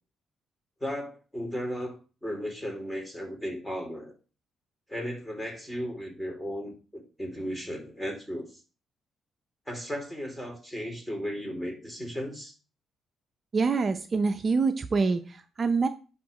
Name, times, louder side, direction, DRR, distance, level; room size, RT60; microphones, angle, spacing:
voice 1, 0.8-4.1 4.9-8.5 9.7-12.5, equal, 5° left, 2 dB, 3.0 m, -35 dB
voice 2, 13.5-15.9, right 4 dB, 40° right, 8 dB, 0.6 m, -26 dB
10.5 x 3.7 x 4.9 m, 0.35 s
cardioid pair, 90°, 0 cm